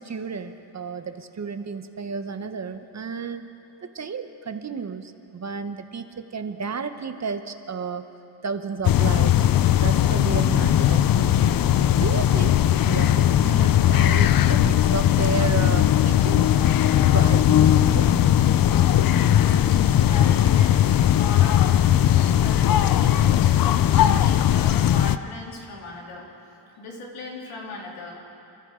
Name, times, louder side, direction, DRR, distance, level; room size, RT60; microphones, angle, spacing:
voice 1, 0.0-3.5 3.9-8.0 8.4-9.5 9.8-11.6 12.0-12.6 12.9-16.6 17.1-18.3, right 5 dB, 35° right, 8 dB, 0.8 m, -32 dB
sound 1, 8.8-25.2, left 11 dB, 45° left, 0.5 m, -18 dB
voice 2, 19.0-22.0 22.4-26.3 26.8-28.2, left 3 dB, 85° left, -2 dB, 3.1 m, -38 dB
29.0 x 13.5 x 3.7 m, 2.7 s
cardioid pair, 110°, 48 cm